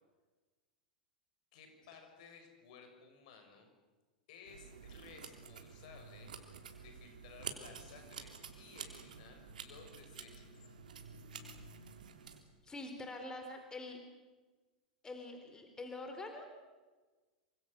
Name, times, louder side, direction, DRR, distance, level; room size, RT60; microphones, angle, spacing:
voice 1, 1.5-3.7 4.3-10.7, left 5 dB, 60° left, 5 dB, 6.7 m, -57 dB
sound 1, 4.5-12.4, right 6 dB, 75° right, 3.4 m, -50 dB
voice 2, 12.6-14.0 15.0-16.5, left 2 dB, 15° left, 5 dB, 4.2 m, -45 dB
27.0 x 25.0 x 6.9 m, 1.3 s
figure-of-eight pair, 95°, 5 cm